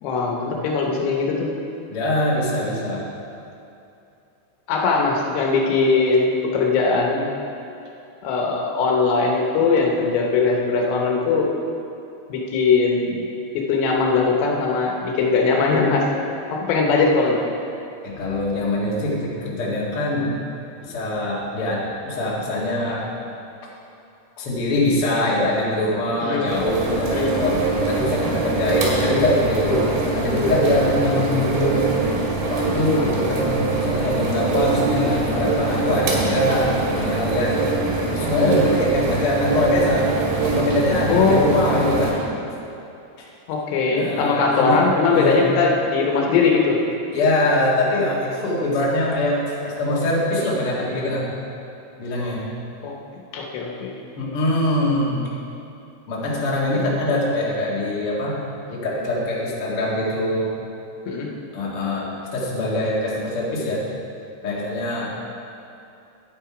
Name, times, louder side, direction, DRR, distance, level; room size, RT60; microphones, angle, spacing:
voice 1, 0.0-1.5 4.7-7.3 8.2-11.5 12.3-13.2 13.5-16.0 16.5-17.4 26.2-26.4 27.1-27.3 41.1-41.5 43.5-46.8 52.8-53.0 53.3-54.0 61.1-61.3, left 4 dB, 80° left, 0 dB, 3.1 m, -20 dB
voice 2, 1.9-3.0 18.0-20.3 20.8-23.1 24.4-27.5 27.8-31.7 32.5-37.8 38.1-40.1 40.5-42.2 43.2-43.3 43.9-44.8 45.1-45.5 47.1-51.2 52.0-52.4 54.2-55.2 56.1-58.4 58.7-60.5 61.5-63.8 64.4-65.1, left 1 dB, 45° left, -5 dB, 2.0 m, -23 dB
sound 1, 26.5-42.1, right 3 dB, 75° right, 3.8 m, -23 dB
11.0 x 9.0 x 4.9 m, 2.7 s
omnidirectional pair, 4.9 m